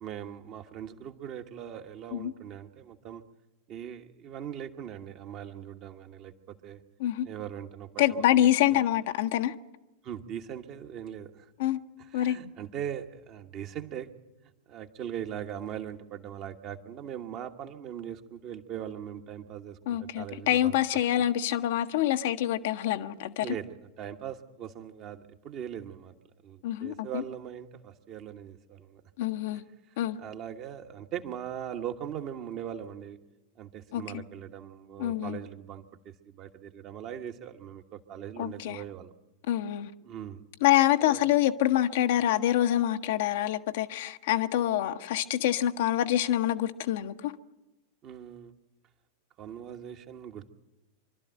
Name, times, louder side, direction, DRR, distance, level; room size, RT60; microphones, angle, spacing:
voice 1, 0.0-3.2 3.7-6.8 7.2-8.8 10.0-11.5 12.0-14.1 14.7-20.8 21.1-21.2 23.4-26.1 26.4-29.0 30.0-33.2 33.6-39.1 40.0-40.4 41.0-41.2 48.0-48.5 49.4-50.5, right 9 dB, 35° right, 1.4 m, -40 dB
voice 2, 8.0-9.5 11.6-11.8 12.1-12.4 19.9-23.5 26.6-27.2 29.2-29.6 30.0-30.2 33.9-34.2 35.0-35.4 38.4-38.8 39.5-39.9 40.6-47.3, left 12 dB, 55° left, 0.9 m, -26 dB
25.5 x 12.5 x 9.0 m
figure-of-eight pair, 90°, 0 cm